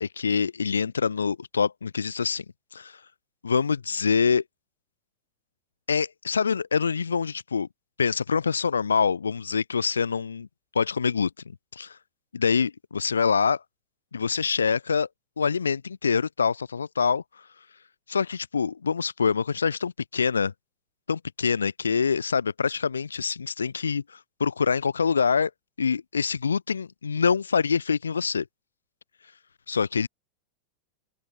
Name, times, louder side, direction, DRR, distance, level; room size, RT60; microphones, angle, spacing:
voice 1, 0.0-2.4 2.7-3.0 3.4-4.4 5.9-7.7 8.0-10.5 10.7-11.3 11.7-12.0 12.3-13.6 14.1-15.1 15.4-17.2 18.1-20.5 21.1-25.5 25.8-28.4 29.7-30.1, left 6 dB, 75° left, 0.8 m, -25 dB
open air
figure-of-eight pair, 90°, 0 cm